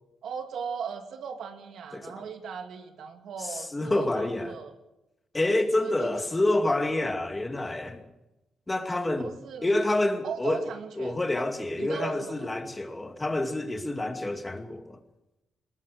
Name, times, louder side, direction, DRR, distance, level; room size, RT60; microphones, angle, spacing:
voice 1, 0.2-4.7 5.8-6.1 9.2-9.7 10.2-11.2 11.8-12.5, right 6 dB, 75° right, 2.6 m, -37 dB
voice 2, 1.9-2.2 3.5-4.5 5.3-8.0 8.7-9.3 9.6-10.7 11.0-15.0, left 2 dB, 20° left, 2.4 m, -28 dB
22.0 x 20.5 x 6.5 m
cardioid pair, 95°, 0 cm